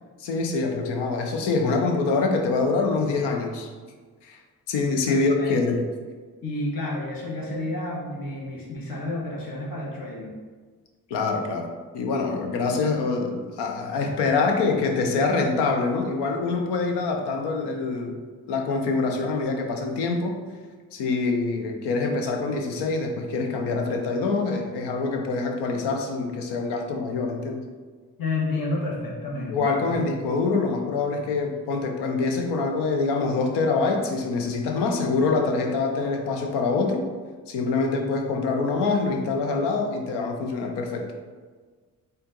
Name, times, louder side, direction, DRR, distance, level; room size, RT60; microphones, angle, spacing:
voice 1, 0.2-3.7 4.2-4.4 4.7-5.8 11.1-11.7 11.9-18.2 18.5-20.4 20.9-27.6 29.5-37.0 37.5-41.1, left 3 dB, 85° left, 3 dB, 0.7 m, -25 dB
voice 2, 5.1-5.5 6.4-10.3 28.2-30.0, left 2 dB, 60° left, -3 dB, 1.3 m, -30 dB
4.2 x 2.6 x 3.8 m, 1.5 s
supercardioid pair, 45°, 40 cm